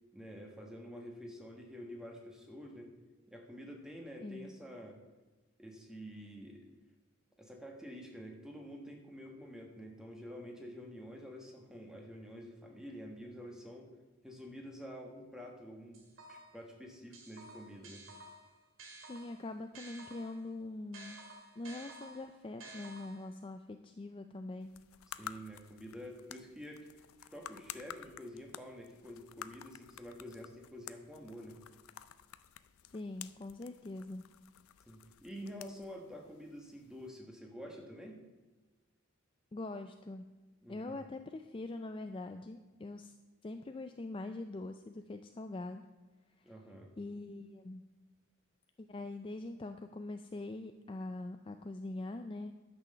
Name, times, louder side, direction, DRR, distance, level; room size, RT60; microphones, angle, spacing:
voice 1, 0.1-2.9 3.3-5.0 5.6-6.7 7.4-13.9 14.2-16.0 16.3-18.0 25.1-26.9 27.3-31.6 34.9-38.2 40.6-41.0 46.4-46.9, equal, 5° right, 1 dB, 1.4 m, -48 dB
voice 2, 4.2-4.5 19.1-21.2 21.6-24.7 32.8-34.3 39.5-40.3 40.7-43.1 43.4-45.9 47.0-47.8 48.9-52.5, left 2 dB, 25° left, 7 dB, 0.4 m, -43 dB
sound 1, 15.9-16.6 17.1-20.5 20.9-23.4, right 2 dB, 75° right, 2.2 m, -52 dB
sound 2, 24.6-37.1, left 10 dB, 90° left, 0.5 m, -52 dB
11.0 x 6.2 x 6.7 m, 1.2 s
head